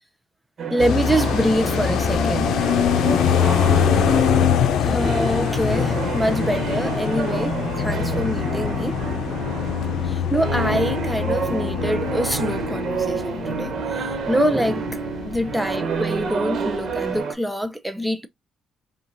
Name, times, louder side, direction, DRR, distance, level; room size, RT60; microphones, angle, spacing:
sound 1, 0.6-17.3, right 5 dB, 55° right, 1.2 m, -29 dB
voice 1, 0.7-2.5 3.0-3.3 4.8-9.0 10.0-18.3, equal, 5° right, 0.7 m, -25 dB
sound 2, 0.8-15.9 16.2-16.3 16.6-17.1, left 8 dB, 75° left, 0.6 m, -23 dB
5.4 x 2.5 x 2.6 m
cardioid pair, 90°, 0 cm